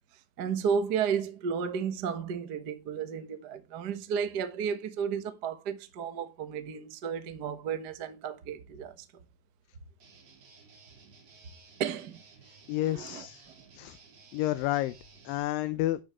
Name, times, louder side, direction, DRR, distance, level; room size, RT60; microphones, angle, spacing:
voice 1, 0.4-8.9 11.8-12.2 12.9-13.3, right 7 dB, 75° right, 0.9 m, -33 dB
Guitar, 10.0-15.4, right 4 dB, 45° right, 4.1 m, -56 dB
voice 2, 12.7-13.4 13.8-14.0 14.3-15.0 15.3-16.0, left 15 dB, 80° left, 2.4 m, -30 dB
11.5 x 9.1 x 3.2 m
omnidirectional pair, 4.1 m